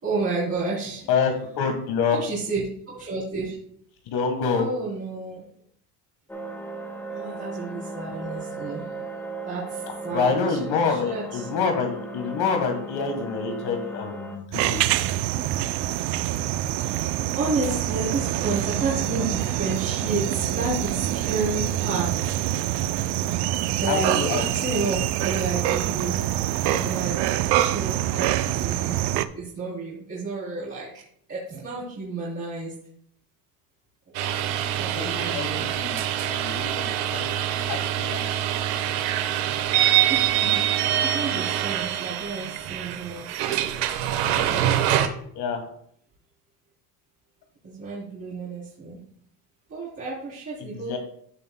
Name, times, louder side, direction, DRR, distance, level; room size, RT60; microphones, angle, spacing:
voice 1, 0.0-1.1 2.1-3.6 4.5-5.5 7.1-8.9 9.4-10.6 10.9-11.5 16.7-22.3 23.4-30.9 31.3-32.7 34.1-34.4 34.7-35.7 40.1-43.3 47.6-49.0 49.7-51.0, right 3 dB, 30° right, -8 dB, 3.4 m, -31 dB
voice 2, 1.1-2.2 4.1-4.7 10.1-14.8 23.9-24.4 34.9-37.3 37.7-38.3 45.3-45.6 50.8-51.0, left 5 dB, 60° left, 4 dB, 1.6 m, -27 dB
sound 1, 6.3-14.4, right 2 dB, 5° left, 1.5 m, -36 dB
sound 2, 14.5-29.3, right 13 dB, 65° right, 0.6 m, -25 dB
sound 3, 34.1-45.1, right 11 dB, 85° right, 1.1 m, -25 dB
15.0 x 5.5 x 2.2 m, 0.65 s
cardioid pair, 125°, 43 cm